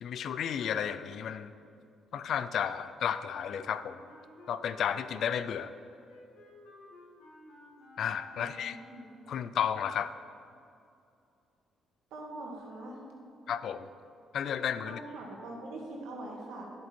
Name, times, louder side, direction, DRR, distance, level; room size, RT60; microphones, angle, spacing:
voice 1, 0.0-1.5 2.1-4.0 4.5-5.7 8.0-8.8 9.3-10.1 13.5-13.9 14.3-15.0, left 8 dB, 70° left, 13 dB, 0.4 m, -32 dB
Wind instrument woodwind instrument, 3.2-9.1, left 2 dB, 90° left, 2.1 m, -54 dB
voice 2, 8.3-9.1 12.1-13.0 14.9-16.7, right 2 dB, 90° right, -1 dB, 1.9 m, -43 dB
10.5 x 7.8 x 4.5 m, 2.5 s
cardioid pair, 90°, 0 cm